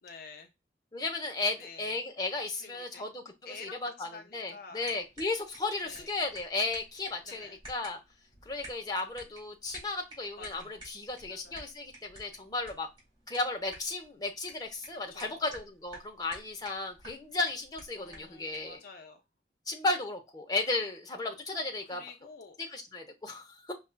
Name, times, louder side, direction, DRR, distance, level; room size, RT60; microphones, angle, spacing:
voice 1, 0.0-0.5 1.6-2.0 2.6-3.0 3.5-4.9 5.8-6.1 7.3-7.5 10.4-10.8 11.3-11.6 15.1-15.4 17.9-19.2 21.9-22.6, left 4 dB, 55° left, 6 dB, 0.5 m, -49 dB
voice 2, 0.9-8.0 8.5-12.9 13.3-18.8 19.7-22.0 22.6-23.7, left 3 dB, 25° left, 2 dB, 0.7 m, -35 dB
sound 1, 4.8-18.8, right 1 dB, 30° right, 2.4 m, -53 dB
5.3 x 2.3 x 2.2 m, 0.23 s
head